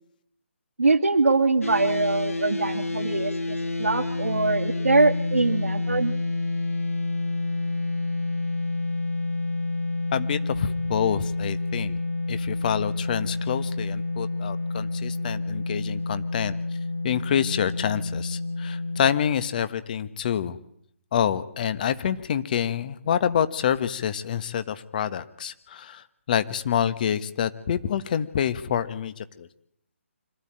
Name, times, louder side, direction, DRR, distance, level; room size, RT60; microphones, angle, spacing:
voice 1, 0.8-6.1, right 3 dB, 80° right, 6 dB, 2.6 m, -23 dB
sound 1, 1.6-19.1, left 2 dB, 85° left, 1.8 m, -29 dB
voice 2, 10.1-12.0 12.3-16.5 17.0-20.6 21.1-29.5, left 9 dB, 40° left, 12 dB, 1.5 m, -27 dB
25.5 x 15.0 x 9.0 m, 0.73 s
figure-of-eight pair, 145°, 7 cm